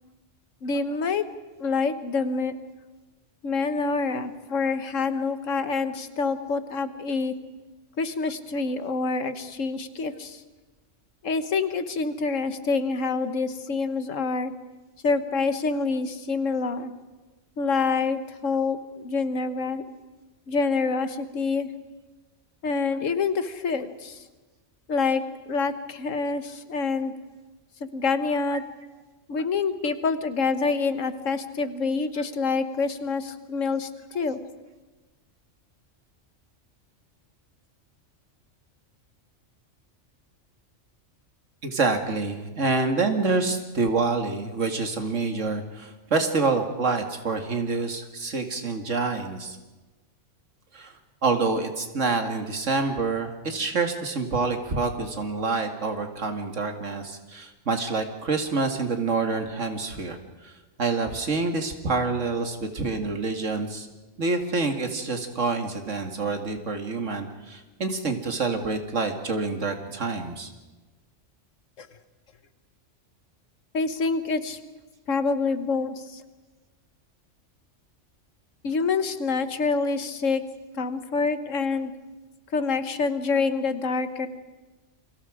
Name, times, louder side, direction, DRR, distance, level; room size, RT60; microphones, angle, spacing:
voice 1, 0.6-1.2 1.6-2.5 3.4-7.3 8.0-10.4 11.2-14.5 15.0-16.9 17.6-19.8 20.5-21.7 22.6-24.2 24.9-27.1 27.8-28.6 29.3-34.4 71.8-71.9 73.7-74.8 75.1-76.2 78.6-80.4 80.7-81.9 82.5-84.3, left 4 dB, 85° left, 11 dB, 1.7 m, -26 dB
voice 2, 41.6-49.6 50.7-50.9 51.2-60.5 60.8-63.9 64.2-70.5, right 3 dB, 75° right, 6 dB, 2.4 m, -27 dB
29.5 x 23.5 x 5.0 m, 1.2 s
omnidirectional pair, 1.3 m